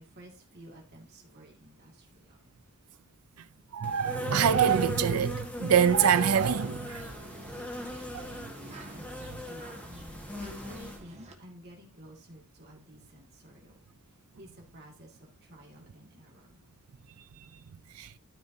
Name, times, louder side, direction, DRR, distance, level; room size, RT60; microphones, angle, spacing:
voice 1, 0.0-2.4 8.6-13.8 14.1-16.6, equal, 50° right, 2.4 m, -52 dB
voice 2, 3.7-7.1 8.1-8.3 17.9-18.1, right 7 dB, 85° right, 0.5 m, -25 dB
Insect, 3.8-11.0, left 1 dB, 5° left, 1.6 m, -39 dB
sound 1, 6.3-11.3, right 2 dB, 30° right, 1.8 m, -49 dB
13.0 x 5.1 x 2.8 m
head